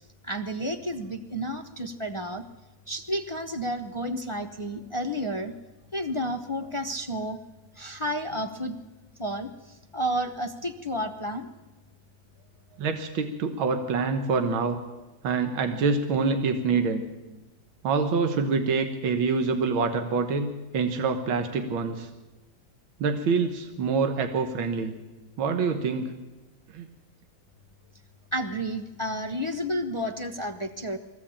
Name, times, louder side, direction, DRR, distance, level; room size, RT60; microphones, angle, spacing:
voice 1, 0.2-2.4 2.9-5.5 5.9-7.4 7.8-8.8 9.2-11.5 28.3-31.0, equal, 40° left, 6 dB, 0.4 m, -31 dB
voice 2, 12.8-14.8 15.2-17.0 17.8-22.1 23.0-24.9 25.4-26.1 26.7-26.9, right 4 dB, 80° right, 6 dB, 2.0 m, -26 dB
22.5 x 15.5 x 8.7 m, 1.2 s
omnidirectional pair, 2.2 m